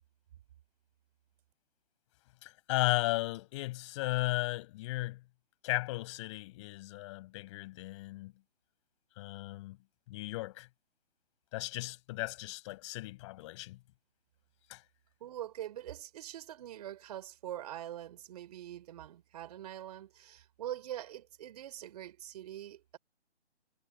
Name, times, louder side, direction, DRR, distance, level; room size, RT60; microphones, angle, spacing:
voice 1, 2.4-5.2 5.6-8.3 9.2-9.8 10.1-10.7 11.5-13.8 14.7-14.8, left 19 dB, 25° left, 5.6 m, -35 dB
voice 2, 15.2-23.0, right 12 dB, 35° right, 3.8 m, -44 dB
figure-of-eight pair, 150°, 34 cm